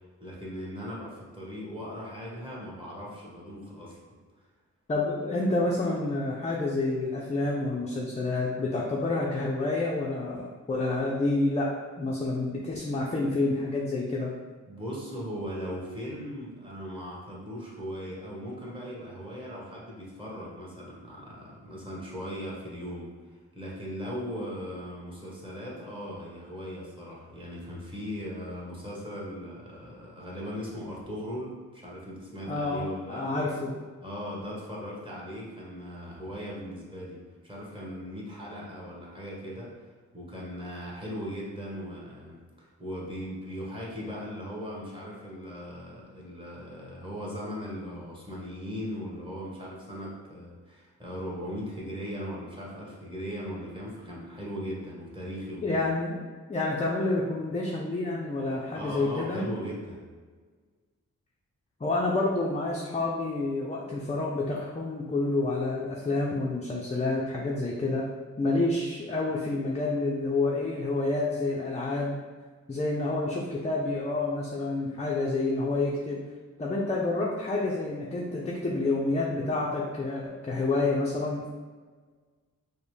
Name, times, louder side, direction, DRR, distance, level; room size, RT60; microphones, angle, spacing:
voice 1, 0.2-4.0 14.7-23.1 23.5-33.2 34.0-37.2 37.4-39.7 40.1-55.8 58.7-60.0, equal, 15° right, -5 dB, 1.3 m, -38 dB
voice 2, 4.9-11.7 12.0-14.3 32.5-32.8 33.1-33.7 55.6-56.2 56.5-59.5 61.8-68.1 68.4-72.2 72.7-76.2 76.6-81.5, left 2 dB, 20° left, -4 dB, 0.5 m, -28 dB
5.1 x 2.1 x 3.2 m, 1.5 s
wide cardioid pair, 90°, 30 cm